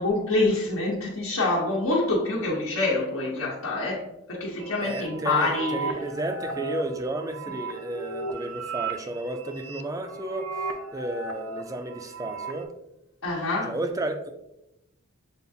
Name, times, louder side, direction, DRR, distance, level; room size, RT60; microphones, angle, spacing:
voice 1, 0.0-4.0 4.3-5.9 13.2-13.7, left 2 dB, 80° left, -5 dB, 0.9 m, -26 dB
sound 1, 4.6-12.6, right 4 dB, 75° right, 0.5 m, -36 dB
voice 2, 4.8-12.7 13.7-14.3, right 2 dB, 15° right, 6 dB, 0.3 m, -32 dB
6.8 x 2.4 x 2.6 m, 0.89 s
head